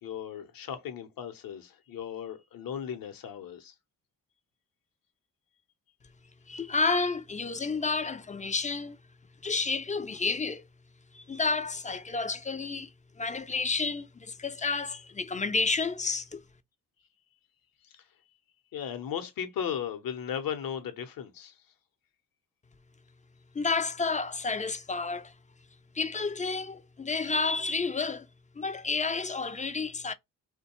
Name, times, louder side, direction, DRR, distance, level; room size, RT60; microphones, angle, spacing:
voice 1, 0.0-3.7 18.7-21.5, left 8 dB, 55° left, 0.8 m, -36 dB
voice 2, 6.5-9.0 9.4-10.6 11.1-12.9 13.2-16.4 23.5-25.3 25.9-28.3 28.6-30.1, left 4 dB, 20° left, 0.3 m, -30 dB
2.5 x 2.2 x 2.8 m
supercardioid pair, 55°, 40 cm